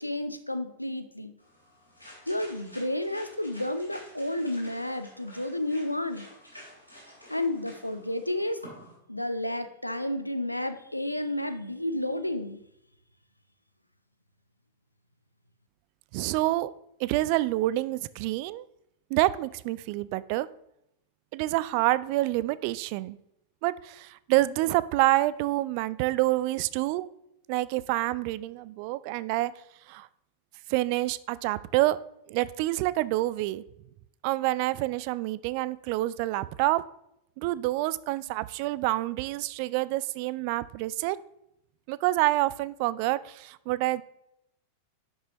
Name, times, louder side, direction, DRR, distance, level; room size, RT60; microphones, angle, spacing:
voice 1, 0.0-1.3 2.3-6.3 7.3-8.6 9.1-12.6, left 1 dB, 85° left, 9 dB, 0.6 m, -31 dB
sound 1, 1.4-8.9, left 1 dB, 90° right, 3.3 m, -50 dB
voice 2, 16.1-16.7 17.0-18.6 19.1-20.5 21.3-23.2 23.6-27.1 27.5-29.5 29.9-30.1 30.7-32.0 32.3-33.6 34.2-36.8 37.4-41.2 41.9-44.0, right 17 dB, 45° right, 18 dB, 0.3 m, -27 dB
11.0 x 6.0 x 3.0 m, 0.79 s
figure-of-eight pair, 90°, 0 cm